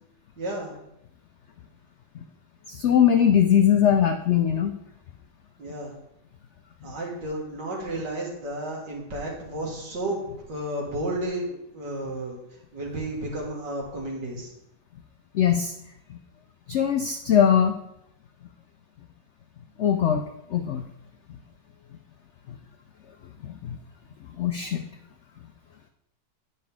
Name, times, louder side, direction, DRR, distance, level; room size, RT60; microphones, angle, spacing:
voice 1, 0.4-0.7 5.6-5.9 6.8-12.4 12.7-14.5, right 1 dB, 90° right, -3 dB, 2.6 m, -32 dB
voice 2, 2.7-4.7 15.3-15.7 16.7-17.7 19.8-20.2 20.5-20.8 23.4-23.8 24.4-24.8, left 9 dB, 85° left, 6 dB, 0.6 m, -21 dB
9.8 x 5.4 x 3.6 m, 0.80 s
omnidirectional pair, 1.8 m